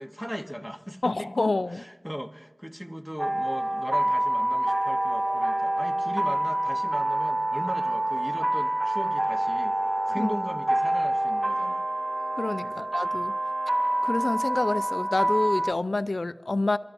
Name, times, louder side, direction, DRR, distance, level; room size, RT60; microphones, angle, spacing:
voice 1, 0.0-9.8 10.1-11.9 12.6-12.9, equal, 10° right, 6 dB, 0.9 m, -38 dB
voice 2, 1.0-1.8 10.2-10.3 12.4-13.3 14.0-16.8, left 2 dB, 85° left, 13 dB, 0.3 m, -28 dB
sound 1, 3.2-15.7, right 1 dB, 40° right, 0.5 m, -27 dB
28.0 x 12.0 x 2.6 m, 1.1 s
wide cardioid pair, 45°, 0 cm